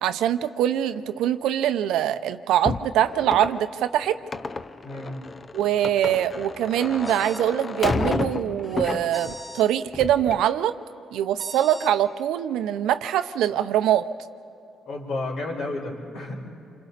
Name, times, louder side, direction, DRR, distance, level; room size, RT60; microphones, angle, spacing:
voice 1, 0.0-4.2 5.5-10.7 11.1-14.1, right 11 dB, 85° right, 11 dB, 0.7 m, -23 dB
sound 1, 2.7-9.5 9.9-10.5, left 3 dB, 35° left, 0.6 m, -31 dB
voice 2, 4.8-5.2 14.9-16.3, left 2 dB, 75° left, -2 dB, 5.2 m, -31 dB
sound 2, 7.0-7.5 9.1-9.7 11.4-11.9, equal, 15° left, 2.2 m, -41 dB
27.5 x 25.5 x 4.1 m, 2.8 s
cardioid pair, 90°, 0 cm